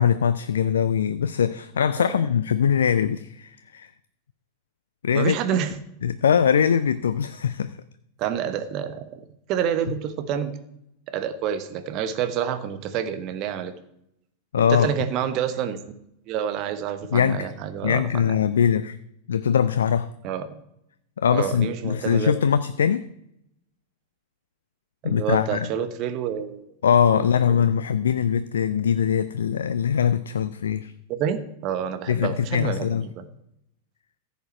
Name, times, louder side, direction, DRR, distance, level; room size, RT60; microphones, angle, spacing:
voice 1, 0.0-3.9 5.0-5.4 6.0-7.8 14.5-14.9 17.1-17.5 17.8-19.0 19.3-20.1 21.2-23.1 25.0-25.7 26.8-30.9 32.1-33.1, left 8 dB, 65° left, 13 dB, 0.4 m, -22 dB
voice 2, 5.1-5.7 8.2-9.0 9.5-10.5 11.1-13.7 14.7-15.8 16.3-18.3 20.2-20.6 21.3-22.3 25.0-26.7 27.1-27.6 31.1-33.3, right 8 dB, 40° right, 10 dB, 1.1 m, -28 dB
15.0 x 7.2 x 4.5 m, 0.78 s
figure-of-eight pair, 90°, 0 cm